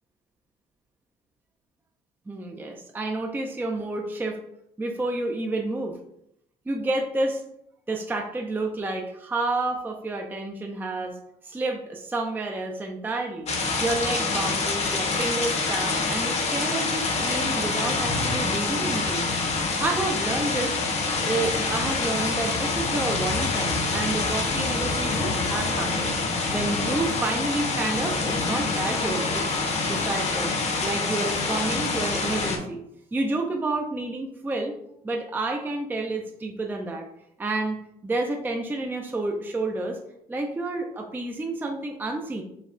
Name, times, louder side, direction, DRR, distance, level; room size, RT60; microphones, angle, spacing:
voice 1, 2.3-4.4 4.8-6.0 6.7-7.4 7.9-11.2 11.4-19.3 19.8-20.8 21.2-26.1 26.5-29.4 29.8-30.5 30.8-32.8 33.1-34.7 35.0-37.1 37.4-40.0 40.3-42.4, right 2 dB, 10° right, 2 dB, 0.5 m, -30 dB
sound 1, 13.5-32.6, left 3 dB, 40° left, 0.9 m, -26 dB
5.2 x 2.3 x 3.7 m, 0.78 s
cardioid pair, 110°, 17 cm